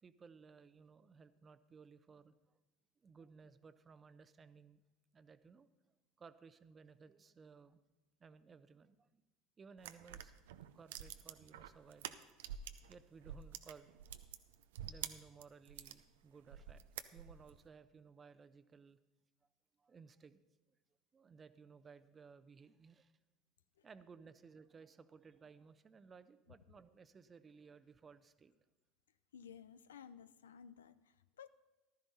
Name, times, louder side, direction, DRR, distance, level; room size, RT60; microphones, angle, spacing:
voice 1, 0.0-2.6 3.0-4.8 5.1-5.7 6.2-7.8 8.2-9.2 9.6-12.2 12.9-13.9 14.8-16.8 17.1-19.0 19.8-20.8 21.1-23.1 23.8-28.6, right 5 dB, 30° right, 0.8 m, -59 dB
sound 1, 9.8-12.9 13.2-16.0 16.5-17.6, right 10 dB, 75° right, 0.6 m, -48 dB
voice 2, 29.3-31.5, left 7 dB, 80° left, 0.4 m, -56 dB
14.5 x 12.5 x 4.2 m
hypercardioid pair, 70°, 0 cm